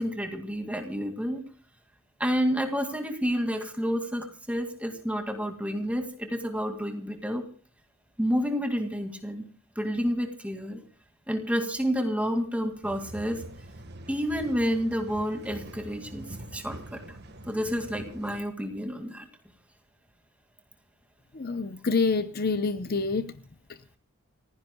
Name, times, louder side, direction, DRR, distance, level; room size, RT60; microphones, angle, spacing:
voice 1, 0.0-1.4 2.2-7.4 8.2-9.4 9.8-10.8 11.3-13.4 14.1-16.3 16.5-17.0 17.5-19.3, equal, 5° right, 2.2 m, -29 dB
sound 1, 12.8-18.4, right 1 dB, 45° right, 1.5 m, -44 dB
voice 2, 21.3-23.3, left 4 dB, 40° left, 0.7 m, -27 dB
29.0 x 16.0 x 2.3 m
head